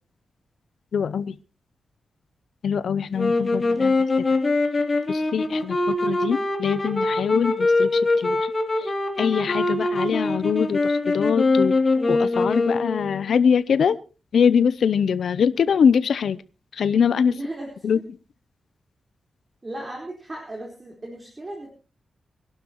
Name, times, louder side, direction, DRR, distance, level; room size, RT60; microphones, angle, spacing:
voice 1, 0.9-1.3 2.6-4.3 5.1-8.5 8.8-8.9 9.2-11.8 12.1-14.0 14.3-16.4 16.7-17.3 17.8-18.0, left 7 dB, 80° left, 15 dB, 0.6 m, -23 dB
sound 1, 3.2-13.2, left 2 dB, 35° left, 3.1 m, -23 dB
voice 2, 17.3-17.7 19.6-21.7, right 1 dB, 25° right, 0 dB, 4.2 m, -36 dB
25.0 x 12.0 x 3.0 m, 0.33 s
wide cardioid pair, 95°, 0 cm